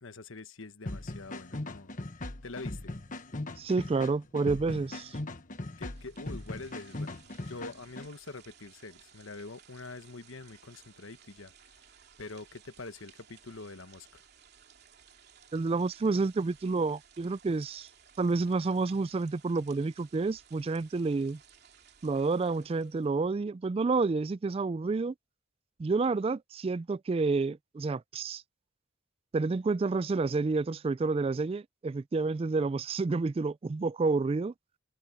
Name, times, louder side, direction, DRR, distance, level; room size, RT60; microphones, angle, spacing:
voice 1, 0.0-1.9 2.4-2.9 5.8-7.2 7.5-14.2, left 3 dB, 80° left, 1.3 m, -45 dB
sound 1, 0.9-8.1, left 2 dB, 40° left, 1.3 m, -39 dB
voice 2, 3.6-5.2 15.5-17.9 18.2-21.4 22.0-25.1 25.8-28.4 29.3-34.5, right 3 dB, 30° right, 0.3 m, -29 dB
sound 2, 5.6-23.2, right 8 dB, 55° right, 3.1 m, -59 dB
head